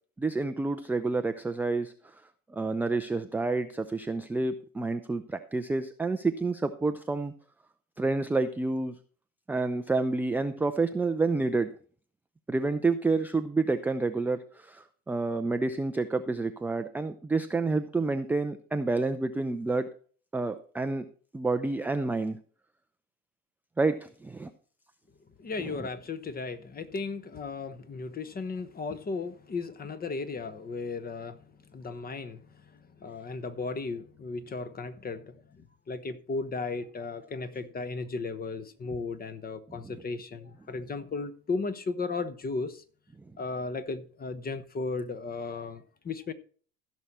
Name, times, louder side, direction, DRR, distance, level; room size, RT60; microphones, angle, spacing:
voice 1, 0.2-1.9 2.5-7.3 8.0-8.9 9.5-11.7 12.5-19.9 20.3-21.1 21.3-22.4 23.8-24.5 25.6-25.8, right 3 dB, 5° right, 0.4 m, -29 dB
voice 2, 25.4-42.8 43.4-46.3, left 4 dB, 20° left, 1.0 m, -35 dB
15.0 x 6.2 x 4.3 m
hypercardioid pair, 75°, 44 cm